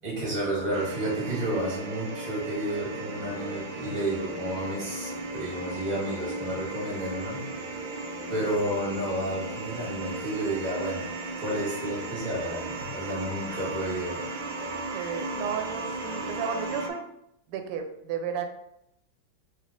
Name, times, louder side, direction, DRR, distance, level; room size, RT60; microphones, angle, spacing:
voice 1, 0.0-7.5 8.3-14.2, right 1 dB, 20° right, -5 dB, 1.4 m, -31 dB
sound 1, 0.7-16.9, right 2 dB, 65° right, 1.1 m, -36 dB
voice 2, 14.9-17.0 17.5-18.5, right 7 dB, 90° right, 6 dB, 1.5 m, -33 dB
3.5 x 3.3 x 3.6 m, 0.78 s
omnidirectional pair, 2.4 m